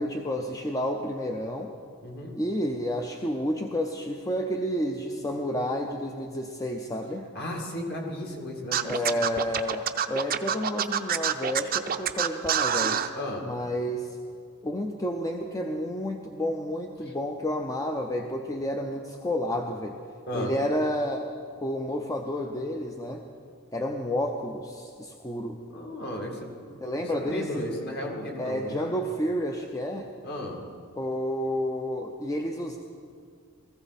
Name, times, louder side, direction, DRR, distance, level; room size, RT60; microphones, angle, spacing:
voice 1, 0.0-1.7 2.4-7.3 8.8-13.0 13.4-14.2 14.6-20.0 20.3-21.3 21.6-23.2 23.7-25.6 26.8-27.7 28.4-30.1 31.0-32.8, equal, 15° left, 3 dB, 0.6 m, -30 dB
voice 2, 2.0-2.3 7.3-8.9 13.2-13.4 20.3-20.5 25.7-26.8 27.1-28.7 30.2-30.6, left 1 dB, 45° left, 0 dB, 2.3 m, -34 dB
Scratching (performance technique), 8.7-13.1, right 8 dB, 40° right, 0.6 m, -26 dB
19.0 x 15.0 x 4.1 m, 2.2 s
head